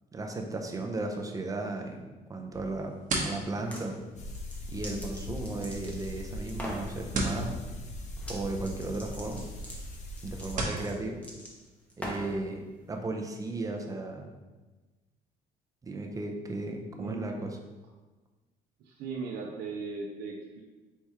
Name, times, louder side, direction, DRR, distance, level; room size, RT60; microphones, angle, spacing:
voice 1, 0.1-2.9 3.2-4.0 4.7-7.6 8.3-9.4 10.2-11.2 12.0-14.3 15.8-17.6, right 2 dB, 20° right, 2 dB, 0.5 m, -35 dB
sound 1, 2.5-10.9, right 2 dB, 50° right, 0.9 m, -39 dB
sound 2, 3.5-3.9 4.3-6.2 6.5-6.9 8.2-8.4 8.6-12.4, equal, 10° left, 0.8 m, -42 dB
sound 3, 4.2-10.6, left 1 dB, 45° left, 0.6 m, -40 dB
voice 2, 17.0-17.4 18.8-20.6, right 4 dB, 70° right, -1 dB, 0.6 m, -38 dB
4.5 x 3.5 x 2.8 m, 1.2 s
cardioid pair, 110°, 17 cm